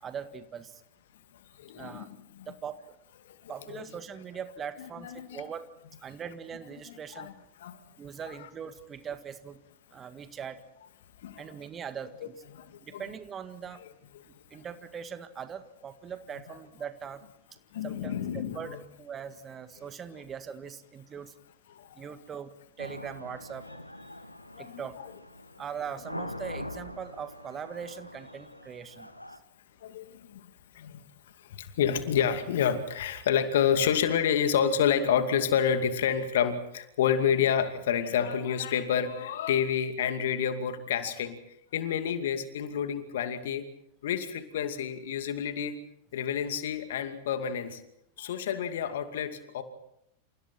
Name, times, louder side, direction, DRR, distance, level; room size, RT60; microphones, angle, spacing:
voice 1, 0.0-0.8 1.8-2.1 2.5-3.0 3.5-5.7 6.0-7.3 8.0-9.6 9.9-10.6 11.4-12.4 12.8-13.8 14.5-17.3 17.8-21.3 22.0-22.5 22.8-23.7 24.6-25.0 25.6-29.1, right 7 dB, 25° right, 10 dB, 1.8 m, -41 dB
voice 2, 1.6-2.5 3.2-3.9 4.8-5.5 6.9-7.3 7.6-7.8 8.4-8.5 11.2-11.5 12.5-13.0 14.1-14.3 16.5-16.6 17.7-18.8 21.7-22.1 24.5-24.8 29.8-31.0 31.4-41.4 41.7-43.7 44.0-45.8 46.1-47.8 48.2-49.6, left 8 dB, 60° left, 8 dB, 2.5 m, -29 dB
sound 1, 22.8-29.4, left 1 dB, 85° left, 1.4 m, -43 dB
28.5 x 28.0 x 4.4 m, 0.76 s
figure-of-eight pair, 90°, 0 cm